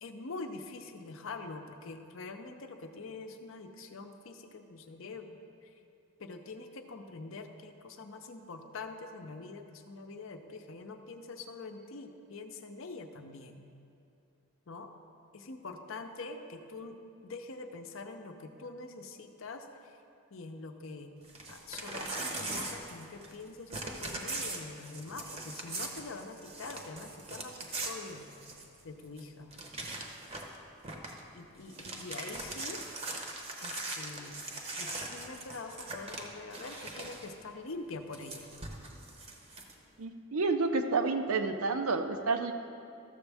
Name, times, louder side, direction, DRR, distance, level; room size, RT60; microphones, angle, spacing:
voice 1, 0.0-5.7 6.2-13.6 14.7-14.9 15.3-20.0 20.3-21.1 21.5-28.3 28.8-29.6 31.3-32.9 33.6-34.5 34.8-38.5, left 3 dB, 65° left, 6 dB, 0.6 m, -45 dB
Crumpling crinkling / Tearing, 21.2-23.4 23.7-28.8 29.2-29.3 29.5-30.6 30.8-31.2 31.6-37.3 38.1-39.7, right 2 dB, 30° right, 0.7 m, -40 dB
voice 2, 40.0-42.5, right 3 dB, 80° right, 7 dB, 0.6 m, -29 dB
13.0 x 7.1 x 3.4 m, 2.6 s
head